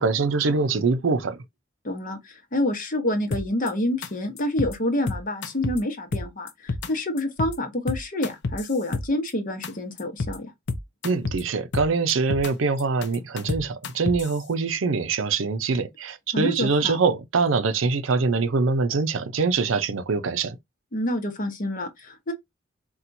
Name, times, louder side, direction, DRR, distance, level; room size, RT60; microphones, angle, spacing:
voice 1, 0.0-1.4 11.0-20.6, right 4 dB, 80° right, 0.6 m, -24 dB
voice 2, 1.8-10.5 16.3-17.0 20.9-22.3, left 1 dB, 45° left, 0.9 m, -28 dB
sound 1, 3.3-3.7 4.0-4.1 4.4-4.7 5.1-5.8 6.1-6.9 7.2-7.5 7.9-9.3 9.6-9.7 10.0-10.4 10.7-11.4 11.7-12.5 12.8-14.3, left 3 dB, 60° left, 0.5 m, -29 dB
4.3 x 2.3 x 2.6 m
head